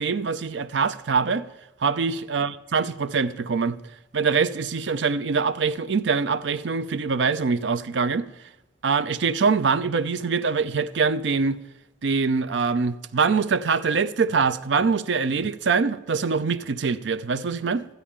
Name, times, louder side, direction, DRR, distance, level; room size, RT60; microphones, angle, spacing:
voice 1, 0.0-1.5 1.8-3.8 4.1-8.3 8.8-11.6 12.0-17.8, right 5 dB, 80° right, 0.5 m, -24 dB
13.0 x 10.0 x 3.6 m
head